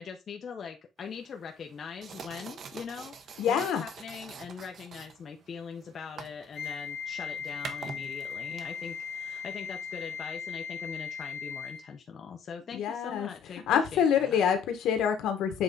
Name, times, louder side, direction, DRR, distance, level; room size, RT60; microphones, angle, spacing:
voice 1, 0.0-14.4, left 6 dB, 40° left, 3 dB, 0.9 m, -42 dB
sound 1, 1.0-10.2, right 6 dB, 45° right, 1.0 m, -47 dB
voice 2, 3.4-3.8 12.7-13.3 13.7-15.6, left 8 dB, 85° left, 6 dB, 1.5 m, -26 dB
Wind instrument woodwind instrument, 6.5-11.9, left 6 dB, 60° left, 2.1 m, -38 dB
7.8 x 3.7 x 3.9 m, 0.25 s
cardioid pair, 155°, 0 cm